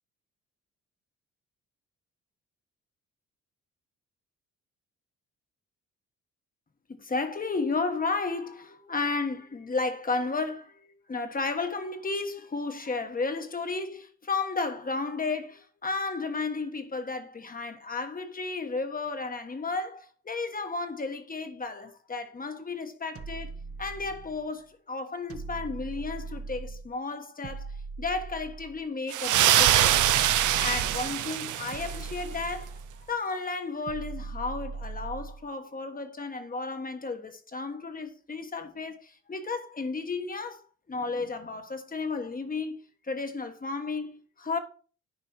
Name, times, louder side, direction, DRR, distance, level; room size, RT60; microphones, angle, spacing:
voice 1, 7.0-23.5 23.8-30.2 30.6-32.8 33.1-42.8 43.0-44.6, left 3 dB, 30° left, 1.4 m, -33 dB
sound 1, 23.2-24.5 25.3-26.9 27.4-28.9 29.6-31.2 31.7-33.1 33.9-35.5, right 4 dB, 50° right, 1.1 m, -39 dB
sound 2, 29.1-32.1, right 12 dB, 80° right, 0.8 m, -23 dB
9.8 x 4.9 x 4.4 m
cardioid pair, 90°, 30 cm